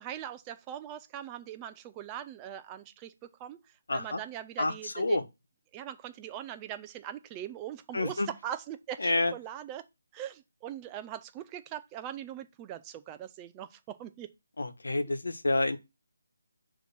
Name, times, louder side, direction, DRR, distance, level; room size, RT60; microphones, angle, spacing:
voice 1, 0.0-3.6 3.9-5.3 5.7-9.8 10.1-14.3, right 11 dB, 10° right, 0.3 m, -41 dB
voice 2, 3.9-4.2 4.6-5.2 7.9-8.3 9.0-9.3 14.6-15.8, left 2 dB, 90° left, 1.1 m, -28 dB
6.2 x 2.9 x 5.6 m
hypercardioid pair, 175°, 0 cm